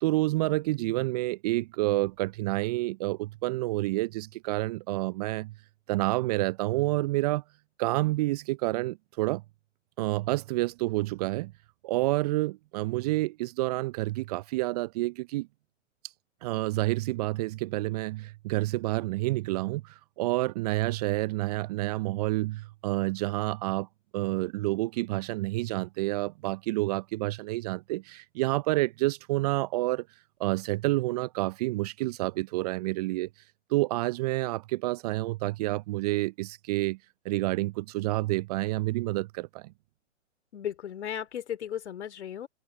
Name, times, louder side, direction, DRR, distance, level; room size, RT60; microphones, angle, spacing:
voice 1, 0.0-5.5 5.9-7.4 7.8-9.4 10.0-11.5 11.8-15.5 16.4-23.9 24.1-30.1 30.4-33.3 33.7-37.0 37.2-39.7, right 19 dB, 30° right, 0.7 m, -29 dB
voice 2, 40.5-42.5, left 9 dB, 60° left, 3.3 m, -35 dB
figure-of-eight pair, 120°, 37 cm